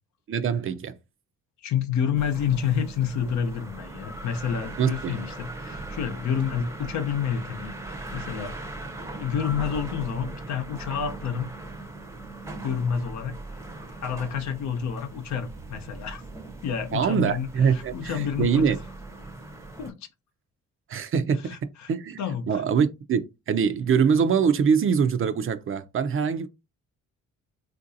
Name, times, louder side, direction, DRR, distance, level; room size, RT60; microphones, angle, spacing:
voice 1, 0.3-0.9 4.8-5.2 16.9-18.8 20.9-21.6 21.9-22.2 22.5-26.5, right 6 dB, 45° right, 0.5 m, -23 dB
voice 2, 1.6-8.5 9.1-11.5 12.6-13.4 14.0-16.2 16.6-18.7 19.8-20.1 21.4-21.9 22.2-22.6, left 8 dB, 65° left, 0.8 m, -29 dB
sound 1, 2.1-19.9, right 2 dB, 10° right, 0.7 m, -39 dB
3.7 x 2.6 x 2.7 m
cardioid pair, 90°, 30 cm